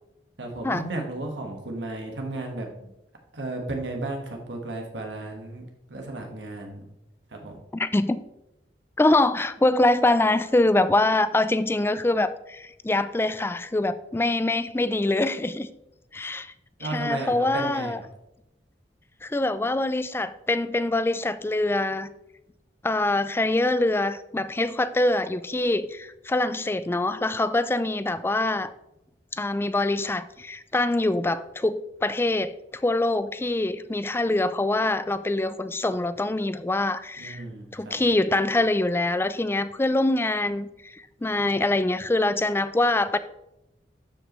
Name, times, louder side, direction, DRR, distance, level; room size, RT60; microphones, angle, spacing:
voice 1, 0.4-2.9 3.3-6.9 7.3-7.5 16.8-18.1 37.2-38.0, right 2 dB, 85° right, 2 dB, 1.6 m, -34 dB
voice 2, 7.7-8.2 9.0-15.7 16.1-16.5 16.9-18.0 19.2-22.1 22.8-28.7 29.3-32.5 32.8-37.4 37.7-43.2, left 2 dB, 15° left, 13 dB, 0.3 m, -24 dB
12.0 x 5.1 x 3.1 m, 0.88 s
head